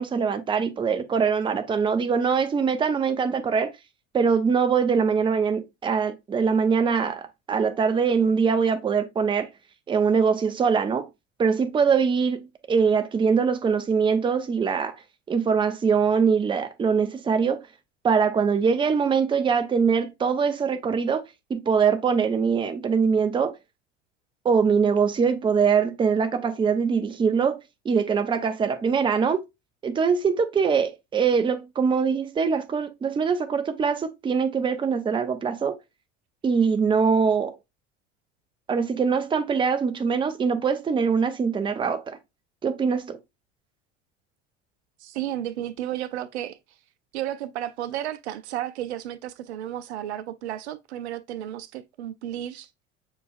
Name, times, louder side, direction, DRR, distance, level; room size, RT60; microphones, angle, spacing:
voice 1, 0.0-3.7 4.1-9.5 9.9-11.1 11.4-15.0 15.3-17.6 18.0-21.2 21.5-23.6 24.4-27.6 27.8-29.5 29.8-35.8 36.4-37.6 38.7-42.2 42.6-43.2, right 6 dB, 15° right, 0.6 m, -23 dB
voice 2, 45.0-46.6 47.1-52.7, right 12 dB, 65° right, 0.5 m, -33 dB
6.7 x 3.2 x 2.4 m
figure-of-eight pair, 70°, 37 cm